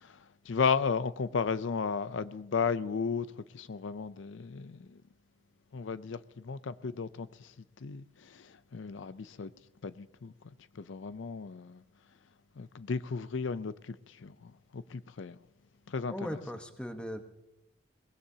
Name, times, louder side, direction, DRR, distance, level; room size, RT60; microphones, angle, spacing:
voice 1, 0.0-5.0 5.7-7.5 7.8-9.5 9.8-10.3 10.7-11.8 12.6-15.4 15.9-16.4, left 5 dB, 80° left, 0.5 m, -34 dB
voice 2, 16.1-17.2, equal, 5° left, 1.0 m, -38 dB
22.5 x 19.5 x 2.8 m
head